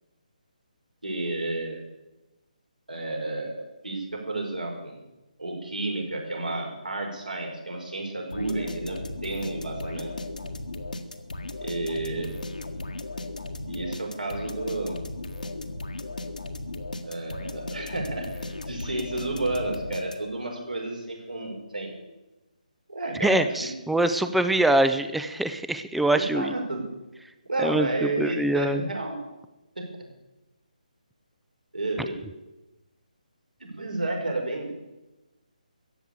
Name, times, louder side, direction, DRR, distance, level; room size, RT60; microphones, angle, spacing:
voice 1, 1.0-1.8 2.9-5.0 5.4-10.4 11.6-12.3 13.7-15.0 17.0-22.0 22.9-23.7 26.1-26.8 27.5-29.1 29.8-29.9 31.7-32.2 33.6-34.7, right 2 dB, 75° right, 0 dB, 5.5 m, -31 dB
sound 1, 8.3-20.5, left 2 dB, 70° left, 1.8 m, -36 dB
voice 2, 23.2-26.5 27.6-28.8, right 1 dB, ahead, 10 dB, 0.6 m, -24 dB
15.0 x 9.3 x 8.3 m, 1.0 s
figure-of-eight pair, 145°, 5 cm